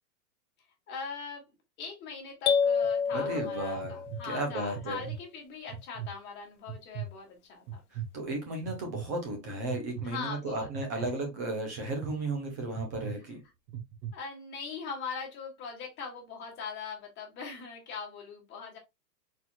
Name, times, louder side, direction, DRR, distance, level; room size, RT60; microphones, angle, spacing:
voice 1, 0.9-1.4 1.8-7.6 10.0-11.1 14.1-18.8, left 5 dB, 20° left, 2.0 m, -41 dB
sound 1, 2.5-4.4, left 6 dB, 65° left, 0.9 m, -28 dB
sound 2, 2.8-3.2 3.8-4.2 4.7-5.2 5.7-6.1 6.7-7.1 7.7-8.1 8.7-9.0 9.7-10.1 10.7-11.1 11.8-12.1 12.7-13.1 13.7-14.1, right 9 dB, 35° right, 1.1 m, -38 dB
voice 2, 3.1-4.0 4.2-5.0 7.9-13.4, right 2 dB, 10° right, 0.4 m, -34 dB
4.3 x 4.3 x 2.3 m
hypercardioid pair, 150°, 49 cm